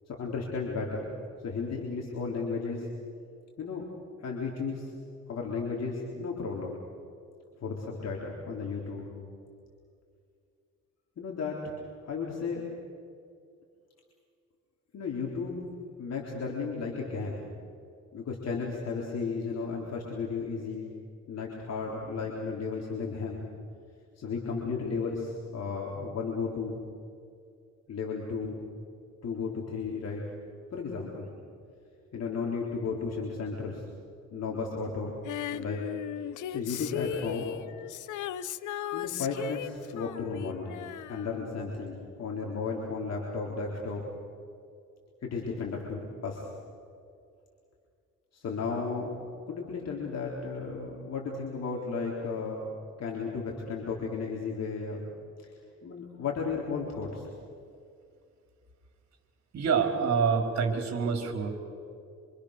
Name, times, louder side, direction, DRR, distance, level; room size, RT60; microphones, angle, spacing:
voice 1, 0.2-1.1 1.4-2.9 3.6-3.9 4.2-4.9 5.3-6.8 7.6-9.1 11.2-12.6 14.9-15.6 16.0-17.4 18.1-20.9 21.3-23.5 24.2-26.8 27.9-28.6 29.2-30.2 30.7-31.3 32.1-33.8 34.3-35.2 35.5-35.8 36.5-37.5 38.9-40.8 41.1-44.0 45.2-46.5 48.3-49.1 49.5-55.1 55.4-55.5 55.8-57.2, left 4 dB, 55° left, -2 dB, 4.0 m, -34 dB
Female singing, 35.3-41.9 42.2-42.3, left 11 dB, 80° left, 0.9 m, -37 dB
voice 2, 59.5-61.5, right 6 dB, 60° right, 4 dB, 4.7 m, -26 dB
27.5 x 26.5 x 6.8 m, 2.4 s
cardioid pair, 90°, 30 cm